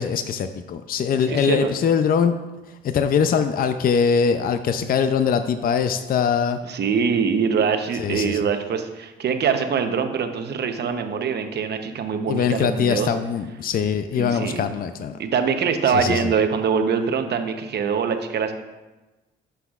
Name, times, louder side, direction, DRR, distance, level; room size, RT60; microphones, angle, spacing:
voice 1, 0.0-2.3 2.8-6.6 8.0-8.4 12.3-15.2 15.9-16.3, left 6 dB, 45° left, 9 dB, 0.5 m, -22 dB
voice 2, 1.3-1.8 6.7-13.1 14.1-14.6 15.2-18.5, right 6 dB, 60° right, 6 dB, 0.8 m, -23 dB
11.5 x 5.7 x 2.4 m, 1.1 s
cardioid pair, 90°, 20 cm